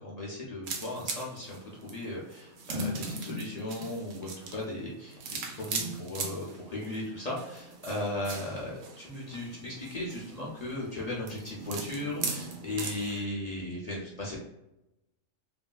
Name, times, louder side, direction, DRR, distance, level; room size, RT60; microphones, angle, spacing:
voice 1, 0.0-5.2 5.5-14.4, left 1 dB, 50° left, -4 dB, 0.5 m, -36 dB
sound 1, 0.6-13.2, right 3 dB, 75° right, 0.9 m, -39 dB
3.1 x 2.7 x 2.2 m, 0.90 s
omnidirectional pair, 1.3 m